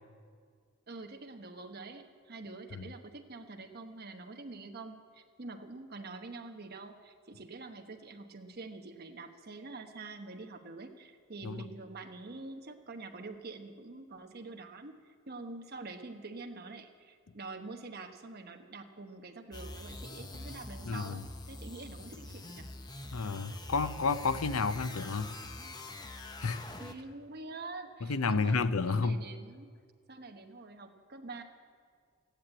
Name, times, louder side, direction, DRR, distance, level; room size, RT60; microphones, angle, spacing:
voice 1, 0.9-22.7 26.8-29.7 30.1-31.4, right 3 dB, 45° right, 1.1 m, -46 dB
sound 1, 19.5-27.2, left 2 dB, 20° left, 0.7 m, -45 dB
voice 2, 20.9-21.2 23.1-25.4 26.4-26.6 28.0-29.2, left 4 dB, 80° left, 0.7 m, -31 dB
15.0 x 10.5 x 8.8 m
head